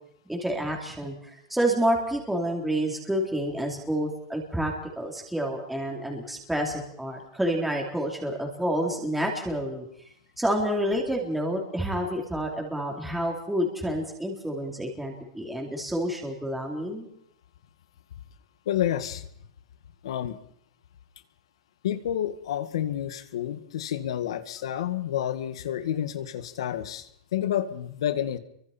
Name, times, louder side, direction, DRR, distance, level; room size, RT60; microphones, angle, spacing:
voice 1, 0.3-1.1 1.5-9.9 10.4-17.1, equal, 5° right, 0 dB, 3.9 m, -29 dB
voice 2, 18.6-19.3 20.0-20.4 21.8-28.4, left 11 dB, 80° left, 11 dB, 1.8 m, -29 dB
29.5 x 24.0 x 4.4 m, 0.70 s
supercardioid pair, 145°, 3 cm